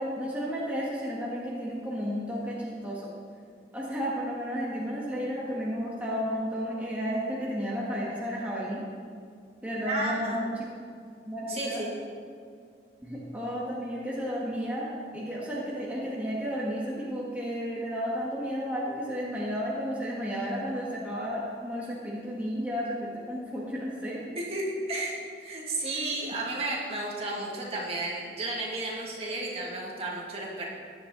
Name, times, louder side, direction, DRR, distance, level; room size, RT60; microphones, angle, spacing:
voice 1, 0.0-3.1 3.7-8.8 9.6-10.5 11.3-11.8 13.0-24.2, equal, 10° right, -7 dB, 1.9 m, -32 dB
voice 2, 9.9-10.4 11.5-11.9 24.4-30.7, right 2 dB, 35° right, -4 dB, 2.5 m, -33 dB
15.5 x 10.5 x 4.1 m, 2.3 s
head